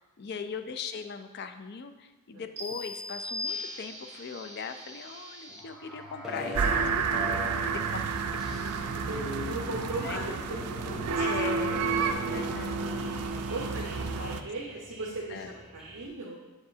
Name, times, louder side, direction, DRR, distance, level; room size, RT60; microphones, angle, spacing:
voice 1, 0.0-7.0 7.3-8.0 10.0-10.2 11.2-11.9 12.3-13.0 14.2-14.4 15.3-15.5, left 6 dB, 50° left, 8 dB, 0.4 m, -39 dB
sound 1, 2.6-4.3, left 2 dB, 30° right, 1.5 m, -37 dB
sound 2, 3.5-16.1, equal, 5° right, 0.9 m, -42 dB
sound 3, 6.5-14.4, right 5 dB, 90° right, 0.4 m, -30 dB
voice 2, 8.8-11.9 13.5-16.4, right 2 dB, 65° right, -4 dB, 0.8 m, -38 dB
7.6 x 4.8 x 2.7 m, 1.1 s
head